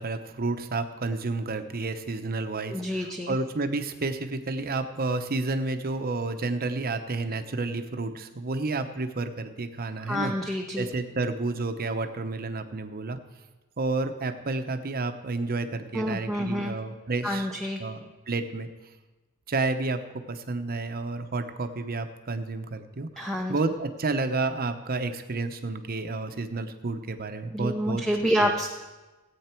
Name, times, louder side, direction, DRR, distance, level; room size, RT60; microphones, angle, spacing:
voice 1, 0.0-13.2 13.8-17.5 17.8-18.7 19.5-28.0 28.4-28.6, right 3 dB, 40° right, 8 dB, 0.8 m, -30 dB
voice 2, 2.7-3.4 10.1-10.9 15.9-16.8 17.2-17.8 23.2-23.6 27.5-28.7, equal, ahead, 2 dB, 0.6 m, -28 dB
17.0 x 8.6 x 4.5 m, 1.2 s
head